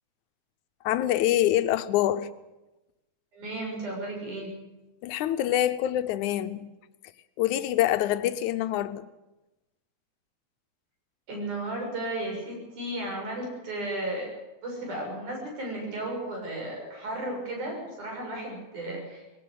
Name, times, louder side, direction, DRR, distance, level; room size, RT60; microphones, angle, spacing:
voice 1, 0.8-2.3 5.0-6.7 7.4-9.1, left 12 dB, 80° left, 2.3 m, -25 dB
voice 2, 3.3-4.5 11.3-14.3 14.6-19.4, right 1 dB, 85° right, 8.0 m, -34 dB
20.5 x 18.0 x 8.0 m
omnidirectional pair, 3.4 m